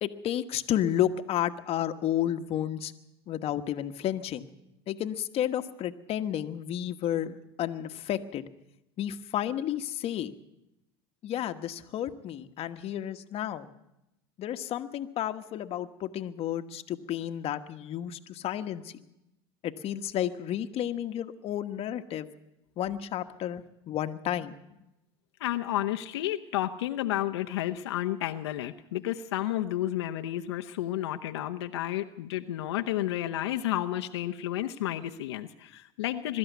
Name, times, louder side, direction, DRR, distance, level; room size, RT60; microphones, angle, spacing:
voice 1, 0.0-2.9 3.3-4.5 4.9-8.4 9.0-10.3 11.2-13.7 14.4-19.0 19.6-22.3 22.8-24.6, left 11 dB, 45° left, 7 dB, 1.3 m, -32 dB
voice 2, 25.4-36.4, left 13 dB, 85° left, 7 dB, 0.9 m, -31 dB
22.0 x 13.0 x 9.3 m, 0.91 s
hypercardioid pair, 95°, 14 cm